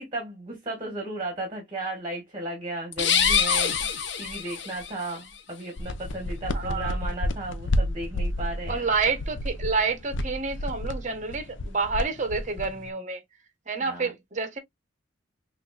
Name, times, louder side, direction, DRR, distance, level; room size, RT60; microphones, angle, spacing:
voice 1, 0.0-8.9 13.8-14.1, right 2 dB, 25° right, 1.9 m, -35 dB
sound 1, 2.9-4.9, left 7 dB, 65° left, 0.9 m, -24 dB
sound 2, 5.8-12.9, left 1 dB, 90° left, 0.6 m, -30 dB
voice 2, 6.5-7.0 8.7-13.2 13.7-14.6, right 4 dB, 40° right, 1.1 m, -28 dB
5.8 x 2.7 x 2.5 m
head